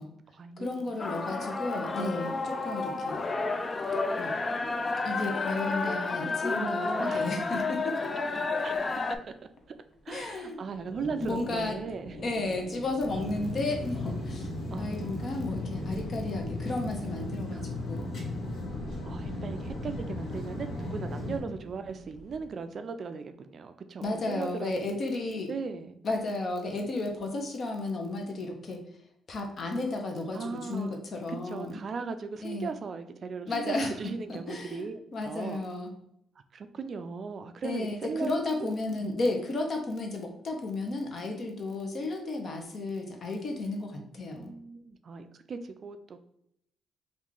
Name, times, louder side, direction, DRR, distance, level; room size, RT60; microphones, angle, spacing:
voice 1, 0.0-1.1 2.0-2.1 6.5-7.3 8.6-9.0 9.7-9.8 10.1-12.2 14.7-15.5 17.5-18.6 19.0-24.8 25.5-26.0 30.3-31.0 31.3-35.6 36.5-38.3 38.6-39.1 44.4-46.2, right 5 dB, 50° right, 9 dB, 0.3 m, -38 dB
voice 2, 0.6-3.2 4.2-4.3 5.0-8.1 10.1-10.6 11.2-11.8 12.2-14.5 14.8-18.1 24.0-25.5 26.0-28.8 29.3-31.8 32.4-32.7 33.5-33.9 34.3-35.9 37.6-44.5, left 2 dB, 50° left, 3 dB, 0.8 m, -33 dB
sound 1, 1.0-9.2, left 3 dB, 30° left, 0.3 m, -31 dB
sound 2, 8.7-22.5, equal, 85° left, 1.1 m, -46 dB
sound 3, 13.1-21.4, left 2 dB, 70° left, 1.4 m, -36 dB
3.0 x 2.5 x 3.6 m, 0.74 s
cardioid pair, 90°, 0 cm